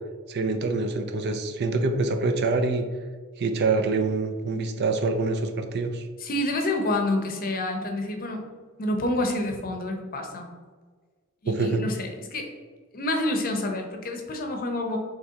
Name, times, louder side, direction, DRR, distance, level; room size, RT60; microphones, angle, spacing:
voice 1, 0.3-2.8 3.4-6.0 11.5-11.8, right 3 dB, 50° right, 6 dB, 0.4 m, -25 dB
voice 2, 6.2-8.4 8.8-10.5 11.4-12.5 12.9-15.0, left 1 dB, 45° left, 3 dB, 0.7 m, -28 dB
4.4 x 3.3 x 3.6 m, 1.5 s
head